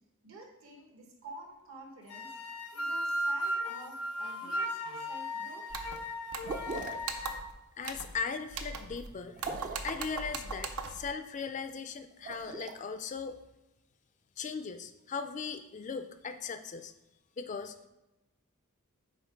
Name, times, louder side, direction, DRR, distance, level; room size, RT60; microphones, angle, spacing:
voice 1, 0.2-2.3 2.7-5.7, right 2 dB, 65° right, 2 dB, 1.2 m, -49 dB
sound 1, 2.1-7.4, equal, 85° left, 0.7 m, -36 dB
sound 2, 5.7-6.0 6.3-6.7 7.0-7.5 7.8-8.2 8.5-9.1 9.4-11.1, right 4 dB, 80° right, 0.6 m, -39 dB
sound 3, 6.4-7.1 9.3-10.0 12.1-12.7, right 3 dB, 35° right, 0.4 m, -39 dB
voice 2, 7.8-9.5 9.8-13.4 14.4-16.9 17.4-17.8, left 5 dB, 35° left, 9 dB, 0.3 m, -38 dB
5.7 x 4.2 x 4.5 m, 1.0 s
head